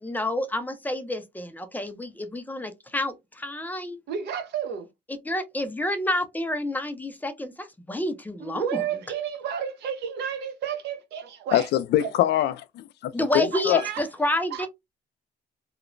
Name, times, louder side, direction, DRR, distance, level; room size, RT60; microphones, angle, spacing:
voice 1, 0.0-4.0 5.2-8.8 13.1-14.7, left 1 dB, 10° left, 0.4 m, -29 dB
voice 2, 4.1-4.9 8.4-11.7 12.0-12.1 13.5-14.0 14.5-14.7, right 8 dB, 70° right, 0.8 m, -31 dB
voice 3, 11.5-13.8, left 12 dB, 70° left, 0.4 m, -24 dB
2.9 x 2.1 x 2.4 m
cardioid pair, 135°, 18 cm